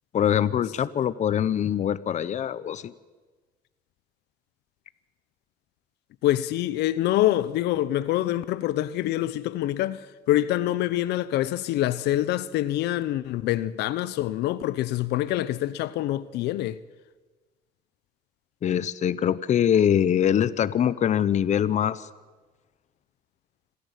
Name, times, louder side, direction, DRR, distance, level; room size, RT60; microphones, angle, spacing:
voice 1, 0.1-2.9 18.6-22.1, left 9 dB, 45° left, 0.8 m, -23 dB
voice 2, 6.2-16.8, left 14 dB, 80° left, 0.8 m, -25 dB
26.5 x 13.5 x 8.2 m
cardioid pair, 110°, 17 cm